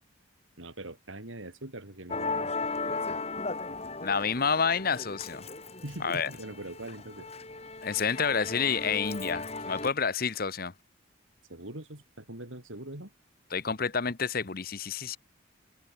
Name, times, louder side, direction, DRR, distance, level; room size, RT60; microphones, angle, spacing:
voice 1, 0.6-2.5 5.8-7.3 11.5-13.1, right 1 dB, 70° right, 4.4 m, -42 dB
Musical instrument, 2.1-9.9, left 3 dB, 30° left, 3.1 m, -36 dB
voice 2, 4.0-5.4 6.0-6.3 7.8-10.7 13.5-15.2, left 6 dB, 45° left, 0.9 m, -29 dB
head